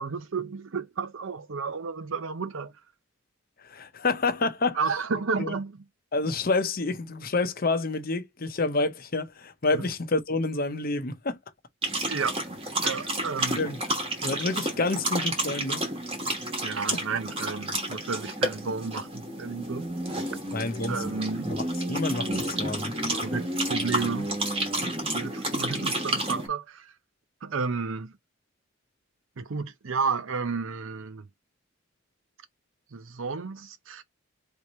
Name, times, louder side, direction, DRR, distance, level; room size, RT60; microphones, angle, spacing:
voice 1, 0.0-2.7 4.8-5.8 9.7-9.9 12.1-12.4 12.8-13.6 16.6-19.8 20.9-21.5 22.9-24.3 24.8-26.9 27.4-28.1 29.4-31.3 32.9-34.0, right 5 dB, 65° right, 0.6 m, -32 dB
voice 2, 3.6-4.8 5.4-5.5 6.1-11.4 13.6-13.8 14.2-15.8 16.9-17.0 20.5-21.0 21.5-22.9, left 3 dB, 40° left, 0.7 m, -28 dB
sound 1, 11.8-26.5, right 1 dB, 25° right, 1.3 m, -30 dB
3.5 x 3.1 x 4.2 m
head